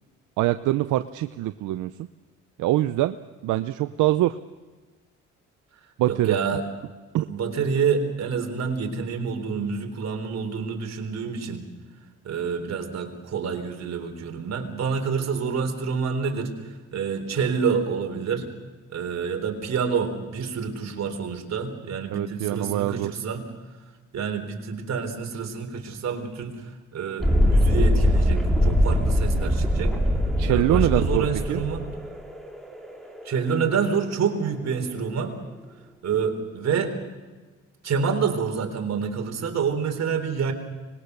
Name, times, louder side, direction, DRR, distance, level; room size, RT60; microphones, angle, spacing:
voice 1, 0.4-1.9 2.6-3.1 3.4-4.4 6.0-6.4 7.1-7.3 22.1-23.1 30.4-31.6, right 15 dB, 85° right, 11 dB, 0.7 m, -24 dB
voice 2, 6.1-6.6 7.3-11.6 12.2-18.5 18.9-23.4 24.1-26.6 26.9-29.9 30.5-32.0 33.3-35.3 36.0-36.9 37.8-40.5, right 6 dB, 60° right, 4 dB, 3.8 m, -27 dB
Thunderstorm, 27.2-34.7, equal, ahead, 3.2 m, -22 dB
25.0 x 21.0 x 6.8 m, 1.3 s
cardioid pair, 90°, 30 cm